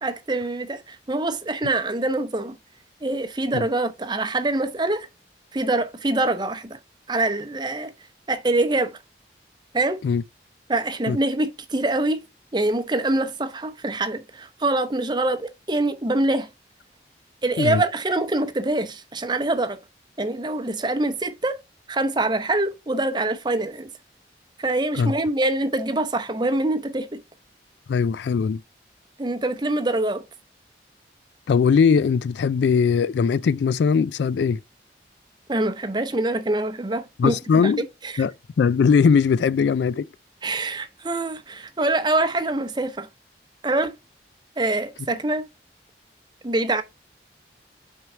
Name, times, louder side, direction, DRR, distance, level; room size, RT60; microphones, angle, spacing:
voice 1, 0.0-2.6 3.0-5.1 5.5-6.8 7.1-7.9 8.3-8.9 9.7-10.0 10.7-12.2 12.5-16.5 17.4-19.8 20.2-21.6 21.9-23.9 24.6-27.2 29.2-30.2 35.5-37.4 37.6-38.2 40.4-43.1 43.6-43.9 44.6-45.4 46.4-46.8, right 2 dB, 25° right, 0.7 m, -24 dB
voice 2, 27.9-28.6 31.5-34.6 37.2-37.9 38.2-40.1, left 6 dB, 75° left, 0.3 m, -20 dB
6.2 x 4.6 x 4.7 m
head